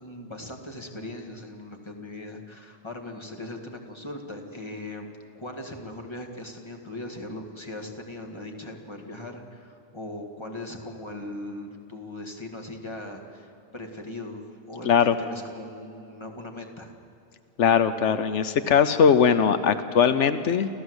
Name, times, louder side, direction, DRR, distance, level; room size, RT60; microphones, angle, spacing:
voice 1, 0.0-16.9, left 1 dB, 25° left, 3 dB, 2.0 m, -39 dB
voice 2, 17.6-20.7, left 7 dB, 85° left, 11 dB, 1.1 m, -20 dB
28.0 x 15.0 x 8.0 m, 2.5 s
omnidirectional pair, 1.2 m